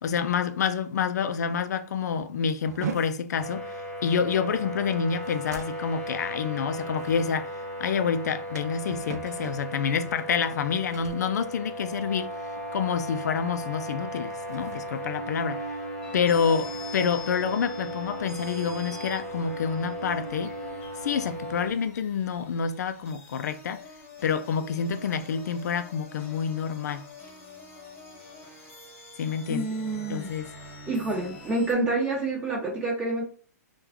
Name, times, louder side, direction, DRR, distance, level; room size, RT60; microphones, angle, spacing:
voice 1, 0.0-15.6 16.1-20.5 21.0-23.8 24.2-27.1 29.2-29.7 30.1-30.4, left 6 dB, 70° left, 0.3 m, -28 dB
sound 1, 2.7-12.3 12.6-13.0 13.3-13.6 14.2-16.1, right 6 dB, 65° right, 0.6 m, -42 dB
sound 2, 3.4-21.7, equal, 10° left, 0.7 m, -36 dB
sound 3, 16.0-31.7, left 3 dB, 30° left, 1.1 m, -46 dB
voice 2, 29.5-30.3 30.9-33.3, right 2 dB, 20° right, 1.5 m, -28 dB
3.6 x 2.2 x 2.9 m
hypercardioid pair, 150°, 9 cm